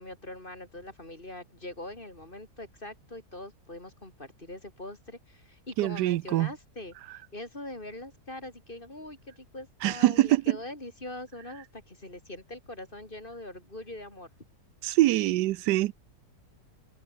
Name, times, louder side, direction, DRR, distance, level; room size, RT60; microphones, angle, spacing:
voice 1, 0.0-14.3, left 1 dB, 30° left, 5.1 m, -43 dB
voice 2, 5.8-6.5 9.8-10.6 14.8-15.9, right 16 dB, 90° right, 1.2 m, -24 dB
omnidirectional pair, 1.7 m